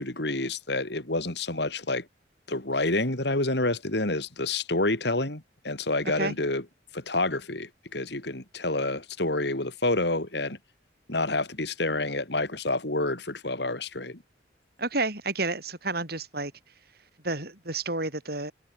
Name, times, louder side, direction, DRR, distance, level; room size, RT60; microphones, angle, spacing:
voice 1, 0.0-2.1 2.5-6.6 6.9-10.6 11.1-14.2, left 2 dB, 65° left, 3.2 m, -28 dB
voice 2, 14.8-16.5 17.2-18.5, right 3 dB, 55° right, 7.6 m, -30 dB
head